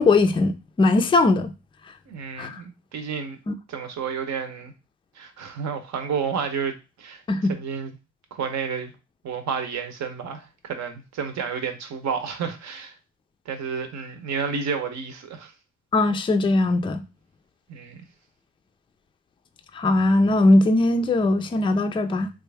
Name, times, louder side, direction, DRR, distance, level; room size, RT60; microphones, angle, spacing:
voice 1, 0.0-1.5 2.4-2.6 3.5-3.6 7.3-7.6 15.9-17.0 19.7-22.3, left 2 dB, 15° left, 0.4 m, -20 dB
voice 2, 2.1-3.4 3.7-4.7 5.2-7.2 7.5-7.9 8.3-8.9 9.2-12.9 13.5-15.5 17.7-18.0, right 6 dB, 65° right, 0.8 m, -31 dB
3.2 x 2.5 x 3.3 m
cardioid pair, 90°, 30 cm